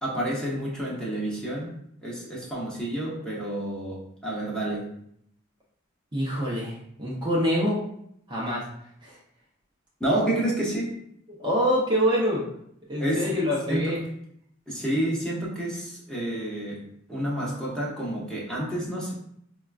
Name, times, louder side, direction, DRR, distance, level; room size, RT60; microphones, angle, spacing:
voice 1, 0.0-4.9 10.0-11.0 13.0-13.4 13.7-14.0 14.7-19.1, right 1 dB, 5° left, -5 dB, 0.8 m, -29 dB
voice 2, 6.1-7.8 8.3-8.7 9.0-9.2 11.4-12.4 12.9-14.0, equal, 25° right, -5 dB, 0.6 m, -25 dB
4.9 x 2.3 x 2.4 m, 0.71 s
head